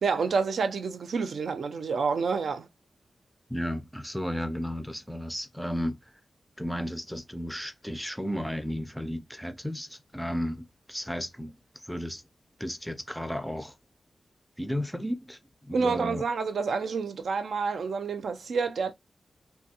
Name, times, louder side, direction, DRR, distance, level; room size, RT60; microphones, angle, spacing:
voice 1, 0.0-2.7 15.7-18.9, right 5 dB, 80° right, 0.4 m, -28 dB
voice 2, 3.5-6.1 6.6-12.2 12.6-13.7 14.6-16.2, equal, ahead, 0.4 m, -34 dB
3.2 x 2.3 x 2.8 m
wide cardioid pair, 145°, 0 cm